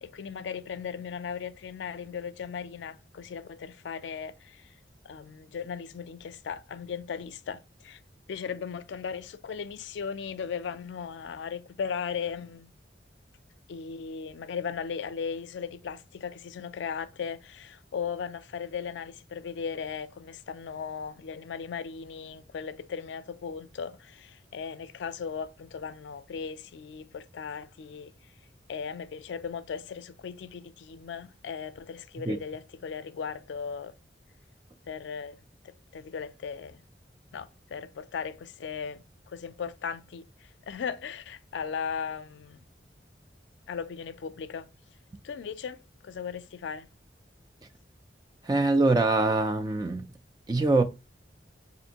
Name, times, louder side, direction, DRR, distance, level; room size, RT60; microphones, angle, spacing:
voice 1, 0.0-4.7 5.0-8.0 8.3-12.7 13.7-28.1 28.7-33.9 34.9-35.4 35.6-36.8 37.3-42.6 43.7-44.7 45.2-45.8 46.0-46.9, left 6 dB, 85° left, 0.4 m, -37 dB
voice 2, 48.4-50.1 50.5-50.8, right 2 dB, 20° right, 0.3 m, -23 dB
5.1 x 2.6 x 2.8 m
head